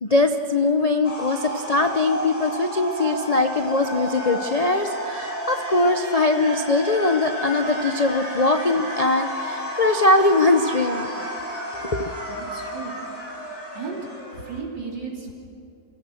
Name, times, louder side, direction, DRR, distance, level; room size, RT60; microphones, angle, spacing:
voice 1, 0.0-11.1 11.8-12.1, left 2 dB, 75° left, 6 dB, 0.3 m, -21 dB
sound 1, 1.0-14.6, equal, 5° left, 3.4 m, -31 dB
voice 2, 12.3-12.9 13.7-14.0 14.3-15.3, right 5 dB, 70° right, -2 dB, 4.2 m, -34 dB
28.5 x 16.5 x 6.4 m, 2.6 s
omnidirectional pair, 2.0 m